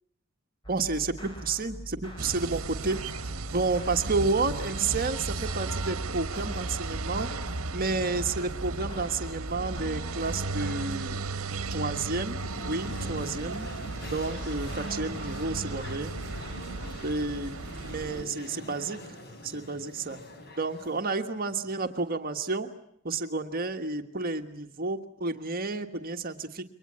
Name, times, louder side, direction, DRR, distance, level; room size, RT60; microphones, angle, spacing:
sound 1, 0.6-10.9, right 1 dB, 25° left, 5.9 m, -43 dB
voice 1, 0.7-3.0 3.5-7.3 7.7-11.2 11.7-13.7 14.1-16.1 17.0-17.5 17.8-19.2 19.4-20.2 20.6-22.7 23.0-26.6, right 3 dB, 45° right, 6 dB, 1.5 m, -31 dB
sound 2, 2.2-18.2, right 3 dB, 75° right, 1.2 m, -35 dB
sound 3, 12.1-22.1, left 1 dB, 50° left, 4.2 m, -44 dB
28.5 x 23.5 x 8.7 m, 0.73 s
head